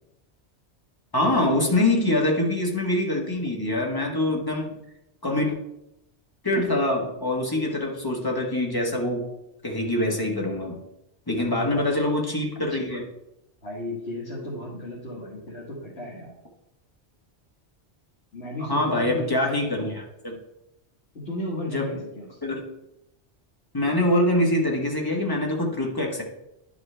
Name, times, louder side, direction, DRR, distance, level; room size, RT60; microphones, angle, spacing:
voice 1, 1.1-4.7 5.2-5.5 6.4-9.2 9.6-10.8 11.3-13.1 18.7-20.4 21.7-22.0 22.4-22.6 23.7-26.2, left 1 dB, 20° left, 0 dB, 1.3 m, -24 dB
voice 2, 13.6-16.3 18.3-19.3 21.1-22.3, left 1 dB, 70° left, -5 dB, 1.8 m, -34 dB
10.5 x 4.9 x 3.3 m, 0.86 s
omnidirectional pair, 1.1 m